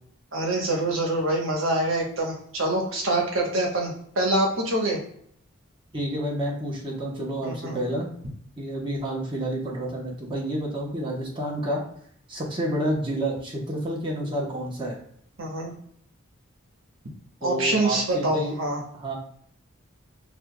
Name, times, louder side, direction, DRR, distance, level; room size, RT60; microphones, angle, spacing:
voice 1, 0.3-5.0 7.4-7.8 15.4-15.7 17.4-18.8, right 1 dB, 75° right, 0 dB, 1.1 m, -25 dB
voice 2, 5.9-8.1 8.6-11.8 12.3-15.0 17.4-18.6 18.9-19.1, right 1 dB, 25° right, -4 dB, 0.9 m, -29 dB
6.4 x 2.4 x 2.2 m, 0.65 s
head